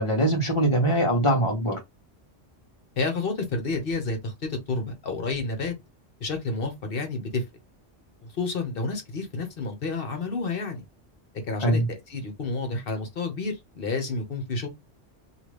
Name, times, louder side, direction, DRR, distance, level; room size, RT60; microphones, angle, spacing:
voice 1, 0.0-1.8 11.6-11.9, right 1 dB, 30° left, 1.1 m, -22 dB
voice 2, 3.0-5.7 6.2-7.4 8.2-10.8 11.5-14.7, left 3 dB, 60° left, 1.0 m, -30 dB
2.8 x 2.4 x 3.1 m
omnidirectional pair, 1.2 m